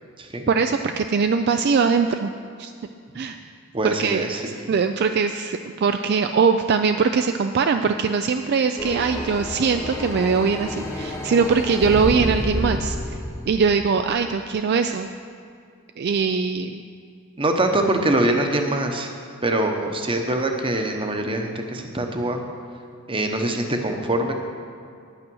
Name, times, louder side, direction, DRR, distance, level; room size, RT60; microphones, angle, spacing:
voice 1, 0.5-2.3 2.6-2.7 3.1-3.4 3.8-4.2 4.7-13.2 13.5-15.1 16.0-16.8, right 5 dB, 50° right, 7 dB, 0.3 m, -21 dB
voice 2, 3.7-4.7 17.4-19.1 19.4-22.4 23.1-24.3, right 1 dB, 25° right, 4 dB, 0.9 m, -24 dB
sound 1, 8.8-14.5, left 1 dB, 15° left, 1.0 m, -30 dB
9.9 x 8.8 x 6.2 m, 2.4 s
head